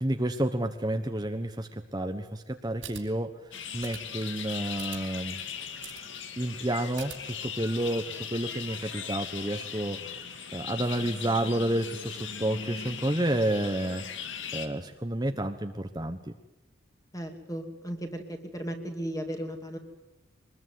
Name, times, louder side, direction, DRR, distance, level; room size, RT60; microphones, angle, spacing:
voice 1, 0.0-3.3 3.7-5.4 6.4-10.1 10.5-14.0 14.5-16.2, right 1 dB, 20° right, 5 dB, 1.2 m, -30 dB
sound 1, 2.8-3.0 3.8-4.0 4.8-5.0 5.8-6.0 6.9-7.2, right 10 dB, 90° right, 4.3 m, -42 dB
sound 2, 3.5-14.7, left 7 dB, 75° left, 2.1 m, -39 dB
voice 2, 17.1-19.8, equal, 20° left, 5 dB, 2.6 m, -36 dB
23.5 x 20.5 x 9.4 m, 0.94 s
head